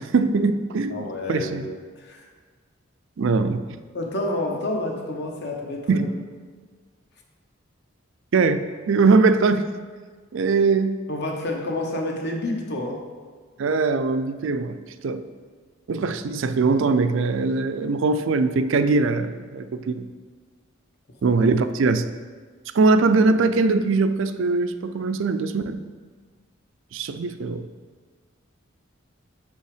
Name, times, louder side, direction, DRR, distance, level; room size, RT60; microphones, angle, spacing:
voice 1, 0.0-1.7 3.2-3.7 5.9-6.1 8.3-9.7 10.3-11.0 13.6-14.8 15.0-15.2 15.9-20.1 21.2-22.1 22.7-25.8 26.9-27.7, right 4 dB, 65° right, 11 dB, 0.4 m, -21 dB
voice 2, 0.9-1.7 2.0-2.2 3.9-6.0 11.1-13.0 21.2-21.4, left 1 dB, 50° left, 1 dB, 1.0 m, -29 dB
6.9 x 5.4 x 4.9 m, 1.5 s
head